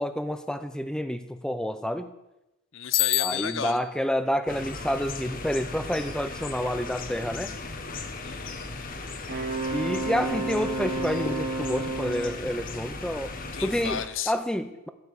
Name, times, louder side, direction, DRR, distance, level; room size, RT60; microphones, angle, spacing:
voice 1, 0.0-2.1 3.2-7.6 9.7-13.4 13.6-14.9, equal, 5° left, 10 dB, 0.7 m, -29 dB
voice 2, 2.7-3.8 8.2-9.0 13.5-14.3, left 7 dB, 60° left, 12 dB, 0.9 m, -34 dB
Bicycle bell, 2.9-3.9, left 18 dB, 85° left, 0.4 m, -26 dB
sound 1, 4.5-14.1, left 3 dB, 40° left, 1.2 m, -37 dB
Wind instrument woodwind instrument, 9.3-12.4, right 2 dB, 50° right, 2.9 m, -31 dB
13.5 x 7.0 x 8.4 m, 0.94 s
head